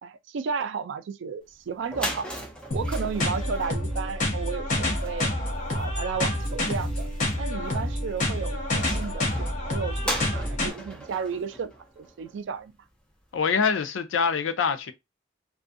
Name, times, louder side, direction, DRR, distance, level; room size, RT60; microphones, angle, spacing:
voice 1, 0.0-2.3 2.7-5.3 5.7-7.1 7.4-12.7, right 6 dB, 70° right, 0.3 m, -33 dB
sound 1, 1.5-1.6 1.8-12.6, equal, 5° left, 0.5 m, -38 dB
sound 2, 2.7-10.7, left 1 dB, 40° left, 0.7 m, -28 dB
voice 2, 13.3-14.9, left 6 dB, 90° left, 0.4 m, -24 dB
2.5 x 2.3 x 2.5 m
head